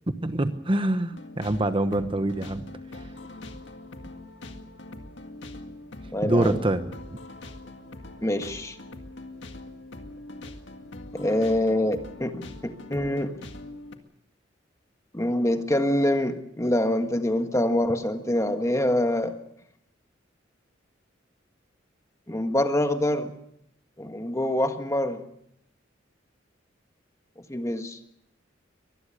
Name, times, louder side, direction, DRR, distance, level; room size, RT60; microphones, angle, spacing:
voice 1, 0.2-2.6 6.2-6.9, right 1 dB, 30° right, 9 dB, 1.1 m, -25 dB
sound 1, 1.1-14.0, left 2 dB, 70° left, 2.0 m, -42 dB
voice 2, 6.1-6.7 8.2-8.8 11.2-13.3 15.1-19.4 22.3-23.3 24.0-25.2 27.5-28.0, left 1 dB, 15° left, 7 dB, 1.6 m, -25 dB
24.0 x 20.5 x 6.6 m, 0.74 s
head